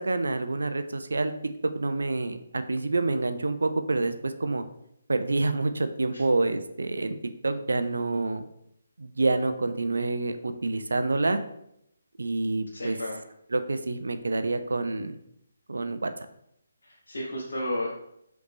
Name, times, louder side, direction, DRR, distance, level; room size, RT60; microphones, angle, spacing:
voice 1, 0.0-1.3 1.8-4.6 5.1-7.2 7.4-8.4 9.0-11.4 12.2-13.0 13.5-15.2 15.7-16.3, right 2 dB, 85° right, 9 dB, 0.4 m, -27 dB
voice 2, 12.7-13.1 16.8-17.9, left 1 dB, 80° left, -5 dB, 1.0 m, -32 dB
3.9 x 3.3 x 3.3 m, 0.78 s
hypercardioid pair, 155°, 0 cm